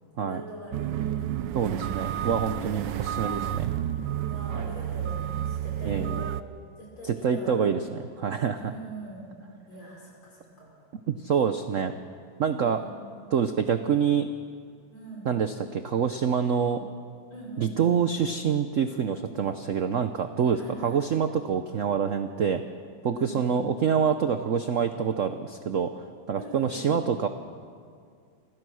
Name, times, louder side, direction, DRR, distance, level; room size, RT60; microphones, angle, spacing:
voice 1, 0.2-2.0 4.2-6.3 6.8-7.6 8.6-9.3 9.7-10.7 12.6-13.2 14.9-15.3 17.3-17.9 20.5-21.0 23.1-23.4 26.3-27.0, right 1 dB, 70° left, -3 dB, 6.1 m, -42 dB
sound 1, 0.7-6.4, right 10 dB, 70° right, 1.2 m, -30 dB
voice 2, 1.5-3.7 5.8-6.2 7.0-8.7 11.1-11.9 12.4-12.8 13.3-14.3 15.2-16.9 17.6-22.6 23.0-25.9 26.3-27.3, right 7 dB, 85° right, 9 dB, 0.6 m, -26 dB
26.0 x 15.5 x 6.3 m, 2.2 s
omnidirectional pair, 2.3 m